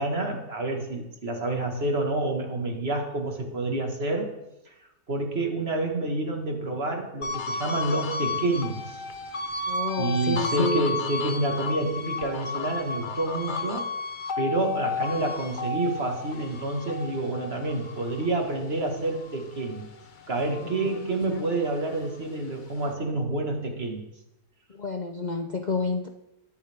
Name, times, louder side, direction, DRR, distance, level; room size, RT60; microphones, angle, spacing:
voice 1, 0.0-4.3 5.1-8.8 10.0-13.8 14.4-19.9 20.3-24.0, right 2 dB, 35° right, 2 dB, 2.0 m, -28 dB
sound 1, 7.2-19.8 20.2-21.9, left 3 dB, 40° left, 0.7 m, -33 dB
voice 2, 9.7-10.9 20.6-20.7 24.7-26.1, left 3 dB, 75° left, 4 dB, 0.4 m, -29 dB
22.0 x 8.2 x 3.6 m, 0.90 s
omnidirectional pair, 1.8 m